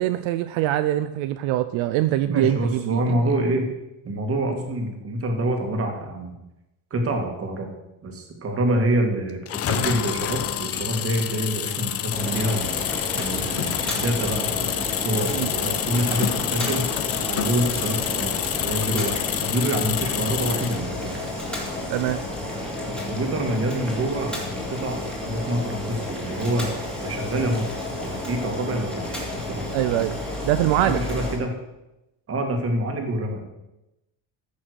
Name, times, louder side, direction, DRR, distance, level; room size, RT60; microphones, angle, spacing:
voice 1, 0.0-3.2 15.3-15.5 21.9-22.2 29.7-31.0, right 14 dB, 75° right, 11 dB, 0.7 m, -23 dB
voice 2, 2.3-3.7 4.0-6.4 6.9-7.7 8.0-12.8 13.1-16.9 17.3-21.3 22.8-26.7 27.0-27.7 28.0-29.8 30.8-31.5 32.3-33.4, right 1 dB, 30° right, 3 dB, 2.0 m, -26 dB
sound 1, 9.5-20.9, left 10 dB, 30° left, 0.5 m, -28 dB
Boiling, 12.1-31.4, left 1 dB, ahead, 2.5 m, -31 dB
14.5 x 6.4 x 6.4 m, 0.95 s
cardioid pair, 170°, 47 cm